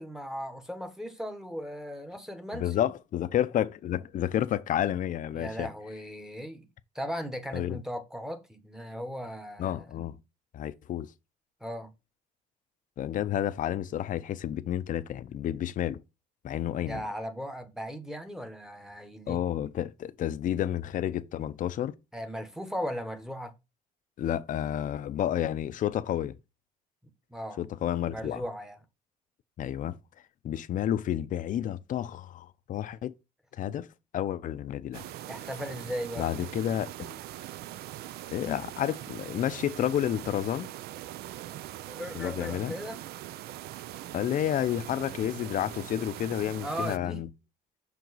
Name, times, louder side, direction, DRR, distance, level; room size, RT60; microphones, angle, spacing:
voice 1, 0.0-2.7 5.3-6.7 6.9-9.9 11.6-11.9 16.8-19.4 22.1-23.5 27.3-27.6 28.1-28.8 35.3-36.3 41.9-43.0 46.6-47.3, equal, 5° right, 1.0 m, -37 dB
voice 2, 2.5-5.7 7.5-7.8 9.6-10.2 10.5-11.1 13.0-16.0 16.4-17.0 19.3-21.9 24.2-26.4 27.6-28.4 29.6-30.0 30.4-33.1 33.5-33.9 34.1-35.0 36.2-36.9 38.3-40.7 42.1-42.7 44.1-47.3, left 11 dB, 50° left, 0.6 m, -30 dB
sound 1, 34.9-47.0, right 14 dB, 70° right, 0.4 m, -42 dB
5.8 x 4.6 x 4.0 m
cardioid pair, 110°, 17 cm